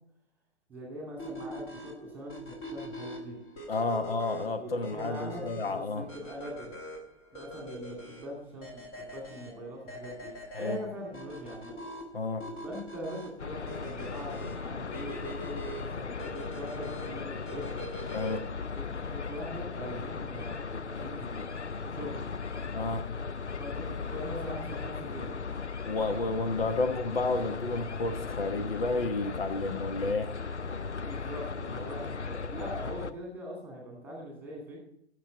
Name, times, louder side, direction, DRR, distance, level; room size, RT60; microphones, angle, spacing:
voice 1, 0.7-3.4 4.5-6.8 7.3-11.7 12.6-17.7 18.7-21.5 21.8-22.2 23.6-25.3 31.0-34.8, equal, 5° right, -2 dB, 2.3 m, -42 dB
sound 1, 1.2-18.6, equal, 15° left, 1.4 m, -44 dB
voice 2, 3.7-6.1 10.5-10.8 12.1-12.4 18.1-18.5 22.7-23.1 25.8-30.3, left 3 dB, 55° left, 8 dB, 1.2 m, -31 dB
sound 2, 13.4-33.1, left 5 dB, 85° left, 0.6 m, -37 dB
14.5 x 6.7 x 4.0 m, 0.74 s
figure-of-eight pair, 130°, 34 cm